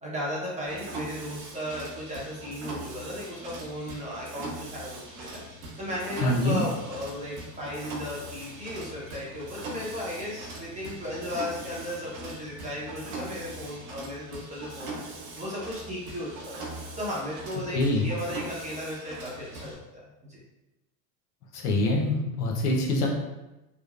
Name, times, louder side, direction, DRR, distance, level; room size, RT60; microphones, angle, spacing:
voice 1, 0.0-5.3 5.8-15.0 15.4-16.7 17.0-19.8 20.2-20.4, left 1 dB, 15° right, -6 dB, 0.8 m, -35 dB
Mechanisms, 0.7-19.7, right 2 dB, 60° right, 0.8 m, -41 dB
voice 2, 6.2-6.6 17.7-18.0 21.5-23.1, left 1 dB, 80° left, 0 dB, 0.8 m, -25 dB
3.0 x 2.0 x 2.4 m, 0.99 s
hypercardioid pair, 110°, 46 cm